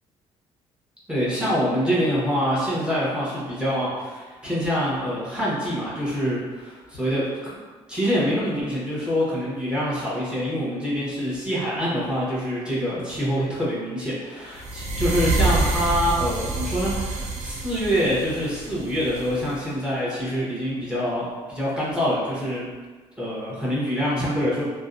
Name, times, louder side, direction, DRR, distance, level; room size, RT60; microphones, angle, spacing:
voice 1, 1.1-7.6 7.9-22.6 23.2-24.6, equal, 10° right, -8 dB, 0.9 m, -25 dB
sound 1, 14.6-19.6, right 2 dB, 75° right, 0.5 m, -27 dB
2.6 x 2.1 x 2.4 m, 1.4 s
cardioid pair, 90°, 12 cm